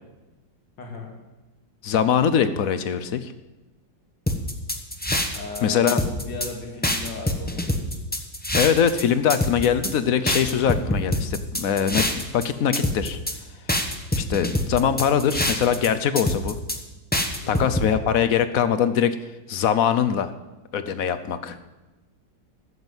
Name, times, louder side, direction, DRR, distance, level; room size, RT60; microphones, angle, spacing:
voice 1, 0.8-1.1 5.3-8.0 17.4-17.7, left 3 dB, 85° left, 1 dB, 2.9 m, -36 dB
voice 2, 1.8-3.3 5.6-6.0 8.5-13.2 14.1-16.6 17.5-19.2 19.5-20.3 20.7-21.6, left 8 dB, 60° left, 11 dB, 1.0 m, -22 dB
sound 1, 4.3-5.6 5.9-6.5 6.8-9.0 9.3-9.9 10.3-12.4 12.7-13.3 13.7-15.9 16.2-16.8 17.1-17.9, left 1 dB, 10° left, 0.7 m, -25 dB
13.5 x 7.3 x 8.0 m, 1.1 s
omnidirectional pair, 2.0 m